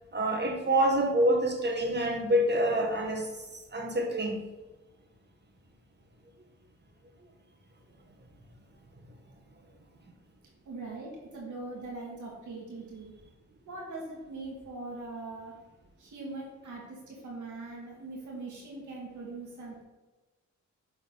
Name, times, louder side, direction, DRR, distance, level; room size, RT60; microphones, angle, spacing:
voice 1, 0.1-3.3 3.7-4.4, right 1 dB, 35° right, 1 dB, 1.4 m, -26 dB
voice 2, 10.7-13.1 13.7-15.5 16.0-19.8, right 2 dB, 80° right, -2 dB, 2.0 m, -41 dB
6.5 x 3.9 x 4.0 m, 1.2 s
cardioid pair, 60°, 30 cm